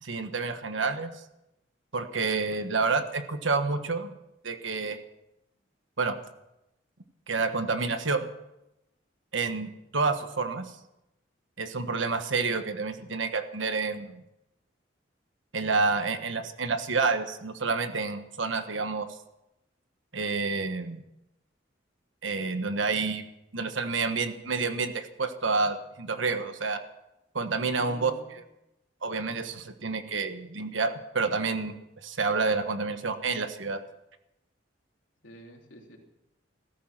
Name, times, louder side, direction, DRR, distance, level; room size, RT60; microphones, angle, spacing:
voice 1, 0.0-1.1 1.9-4.2 4.4-5.0 6.0-6.2 7.3-8.2 9.3-10.7 11.6-14.2 15.5-19.1 20.1-21.0 22.2-23.2 23.5-26.8 27.3-28.4 29.0-31.8 32.0-33.8, right 4 dB, 90° right, 8 dB, 1.4 m, -29 dB
voice 2, 27.6-28.3 35.2-36.0, left 1 dB, 85° left, 0 dB, 3.2 m, -47 dB
16.0 x 14.0 x 6.0 m, 0.89 s
head